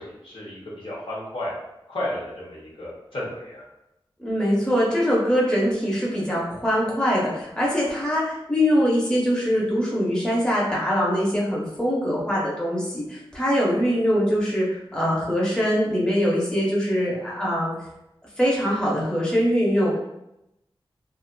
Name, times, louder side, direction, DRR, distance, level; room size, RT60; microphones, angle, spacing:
voice 1, 0.0-1.5 1.9-3.6, left 1 dB, 70° left, -6 dB, 0.9 m, -33 dB
voice 2, 4.2-17.7 18.4-20.0, equal, 10° left, -5 dB, 0.7 m, -23 dB
2.4 x 2.4 x 2.2 m, 0.86 s
wide cardioid pair, 65°, 9 cm